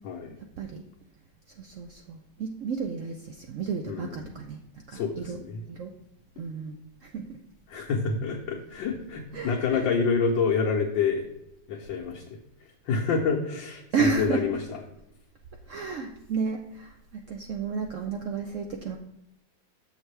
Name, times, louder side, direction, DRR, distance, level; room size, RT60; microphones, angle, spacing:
voice 1, 0.0-0.4 3.9-4.3 4.9-5.6 7.7-11.2 11.7-12.2 12.9-14.6, left 5 dB, 90° left, -3 dB, 1.6 m, -27 dB
voice 2, 1.6-4.6 4.9-5.4 5.7-5.9 6.4-7.4 9.3-9.9 13.9-14.5 15.7-19.0, right 5 dB, 85° right, 4 dB, 0.6 m, -32 dB
7.2 x 6.3 x 3.3 m, 0.88 s
omnidirectional pair, 2.0 m